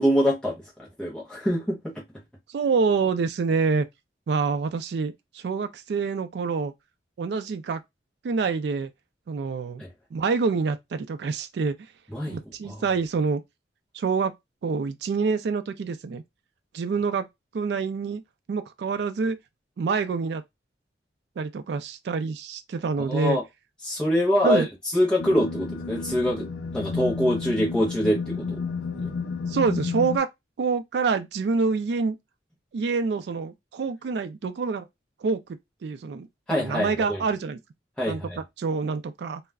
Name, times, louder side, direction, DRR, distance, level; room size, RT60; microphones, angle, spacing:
voice 1, 0.0-2.0 9.8-9.9 12.1-12.4 12.6-12.8 23.1-23.4 23.8-24.7 24.9-28.6 29.0-29.1 36.5-37.2 38.0-38.4, equal, 5° left, 0.6 m, -25 dB
voice 2, 2.5-3.9 4.3-6.7 7.2-7.8 8.2-8.9 9.3-9.8 10.1-11.8 12.3-13.4 13.9-14.3 14.6-16.2 16.7-17.3 17.5-18.2 18.5-19.4 19.8-20.4 21.4-23.4 24.4-24.7 29.5-30.3 30.6-32.2 32.7-34.8 35.2-35.4 35.8-36.3 36.6-37.6 38.1-38.2 38.6-39.4, right 4 dB, 60° right, 0.3 m, -26 dB
sound 1, 25.2-30.2, left 4 dB, 65° left, 0.4 m, -31 dB
2.3 x 2.1 x 3.3 m
head